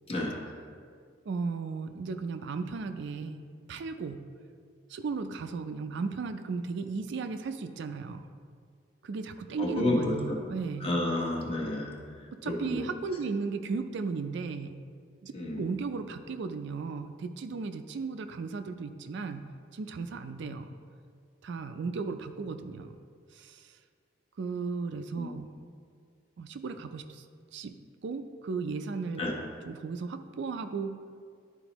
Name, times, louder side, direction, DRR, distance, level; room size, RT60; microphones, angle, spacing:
voice 1, 0.1-0.4 9.6-10.4 10.8-11.9 12.4-12.8 15.3-15.6 25.2-25.3 29.2-29.3, left 1 dB, 30° left, -2 dB, 1.0 m, -30 dB
voice 2, 1.3-4.2 4.9-8.2 9.0-10.9 12.3-14.8 15.2-20.7 21.4-23.0 23.3-23.8 24.4-25.5 26.4-27.3 27.5-27.7 28.0-29.2 29.6-30.9, right 4 dB, 65° right, 9 dB, 0.4 m, -35 dB
11.0 x 4.2 x 3.0 m, 2.1 s
head